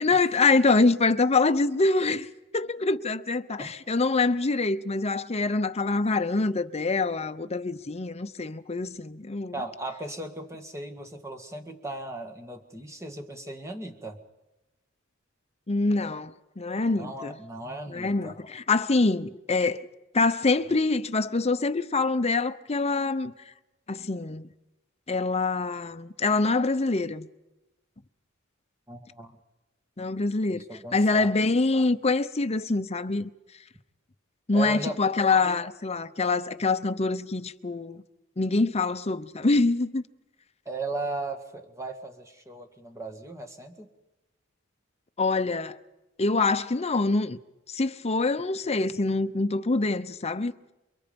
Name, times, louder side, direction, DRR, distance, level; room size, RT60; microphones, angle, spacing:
voice 1, 0.0-2.3 2.5-9.6 15.7-17.4 17.9-19.8 20.1-23.3 23.9-24.5 25.1-27.3 30.0-30.6 30.9-33.3 34.5-38.0 38.4-40.0 45.2-45.8 46.2-47.4 47.7-50.5, left 3 dB, 30° left, 0.7 m, -25 dB
voice 2, 9.5-14.2 16.9-18.4 28.9-29.3 30.5-31.3 34.5-35.0 40.7-43.9, right 2 dB, 15° right, 1.9 m, -37 dB
28.5 x 23.5 x 5.3 m
head